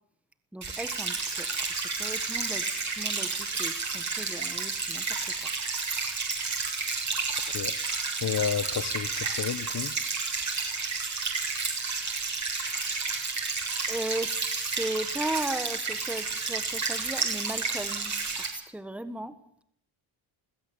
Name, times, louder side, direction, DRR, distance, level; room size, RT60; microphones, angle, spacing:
voice 1, 0.5-5.2 13.9-14.3 14.8-18.1 18.4-19.3, right 1 dB, 5° right, 1.4 m, -36 dB
sound 1, 0.6-18.5, right 4 dB, 35° right, 7.4 m, -31 dB
voice 2, 8.2-9.1 9.4-9.9, left 8 dB, 40° left, 1.1 m, -30 dB
22.0 x 16.0 x 8.5 m
cardioid pair, 115°, 48 cm